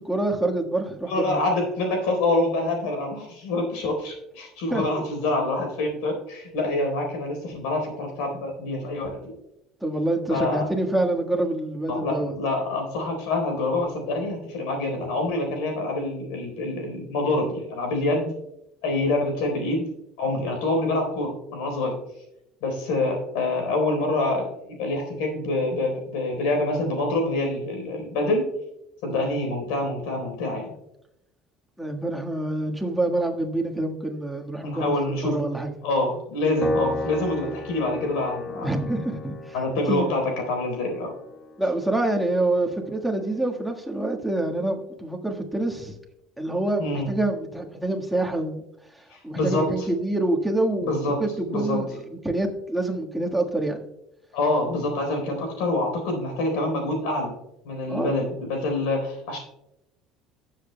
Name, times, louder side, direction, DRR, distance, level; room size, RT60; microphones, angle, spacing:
voice 1, 0.0-1.3 4.7-4.8 9.8-12.4 29.1-29.3 31.8-34.9 35.2-35.7 38.5-39.5 39.9-40.1 41.6-45.9 46.4-48.6 48.9-50.9 51.2-52.0 52.2-53.8 57.9-58.1, right 2 dB, 5° right, 0 dB, 1.5 m, -26 dB
voice 2, 1.1-9.3 10.3-10.7 11.9-18.3 18.8-19.8 20.2-21.9 22.6-28.5 29.0-30.7 34.6-35.4 35.8-38.7 39.5-41.1 46.8-47.1 49.1-49.9 50.8-51.2 51.5-51.8 54.3-57.3 57.6-59.4, left 2 dB, 85° left, 3 dB, 3.9 m, -26 dB
Piano, 36.6-43.2, left 2 dB, 25° left, 1.2 m, -35 dB
17.5 x 7.6 x 2.2 m, 0.84 s
cardioid pair, 115°, 0 cm